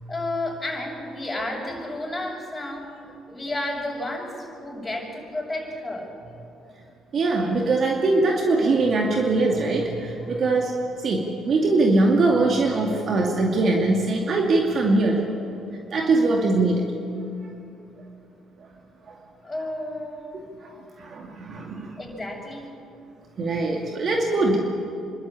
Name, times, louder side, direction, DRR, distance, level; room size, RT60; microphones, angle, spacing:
voice 1, 0.1-2.9 3.3-6.1 19.4-20.2 22.0-22.7, left 1 dB, 20° left, -4 dB, 6.3 m, -31 dB
voice 2, 7.1-10.7 11.0-15.3 15.9-16.9 19.1-19.2 19.6-19.7 20.3-20.7 21.0-21.9 23.4-24.6, right 2 dB, 55° right, 0 dB, 2.4 m, -22 dB
27.0 x 12.5 x 8.6 m, 2.7 s
hypercardioid pair, 60°, 0 cm